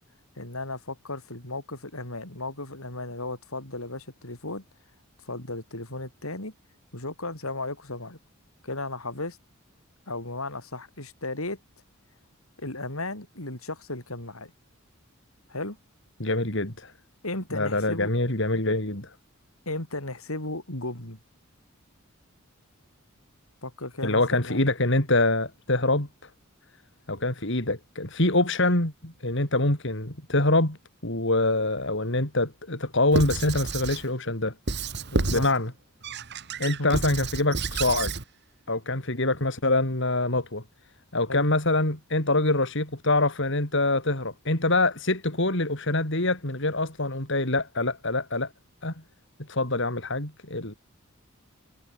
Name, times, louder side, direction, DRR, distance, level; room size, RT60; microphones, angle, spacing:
voice 1, 0.4-4.6 5.2-6.5 6.9-8.2 8.6-9.4 10.1-11.6 12.6-14.5 15.5-15.8 17.2-18.1 19.7-21.2 23.6-24.6 35.1-35.5 36.8-37.0 41.3-41.4, left 2 dB, 90° left, 7.9 m, -35 dB
voice 2, 16.2-16.9 17.5-19.1 24.0-26.1 27.1-30.8 31.0-34.5 35.3-35.7 36.6-38.1 38.7-40.6 41.1-48.5 48.8-48.9 49.5-50.7, left 2 dB, 60° left, 4.5 m, -25 dB
Squeak / Writing, 33.1-34.1 34.7-35.6 36.0-38.2, right 3 dB, 55° right, 2.0 m, -30 dB
head